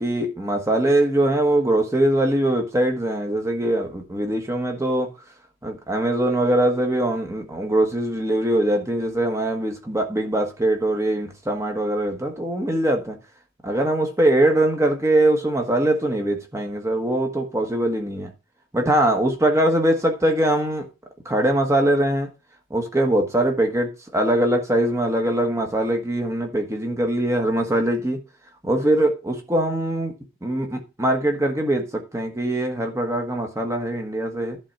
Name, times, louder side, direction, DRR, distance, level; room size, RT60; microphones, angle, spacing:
voice 1, 0.0-5.1 5.6-13.2 13.6-18.3 18.7-20.9 21.2-22.3 22.7-28.2 28.6-30.1 30.4-34.6, right 1 dB, 15° right, 1.4 m, -22 dB
11.0 x 3.9 x 5.6 m
head